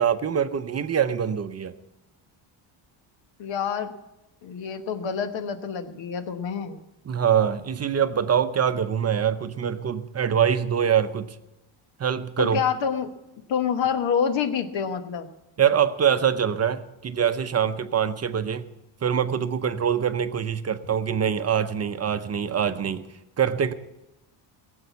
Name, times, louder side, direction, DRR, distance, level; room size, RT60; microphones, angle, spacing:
voice 1, 0.0-1.7 7.1-11.3 12.0-12.6 15.6-18.6 19.0-23.0 23.4-23.7, right 8 dB, 30° right, 10 dB, 0.7 m, -24 dB
voice 2, 3.4-3.9 4.4-6.8 12.4-13.1 13.5-15.3, left 7 dB, 65° left, 10 dB, 1.3 m, -27 dB
17.0 x 8.0 x 8.2 m, 0.97 s
cardioid pair, 105°, 48 cm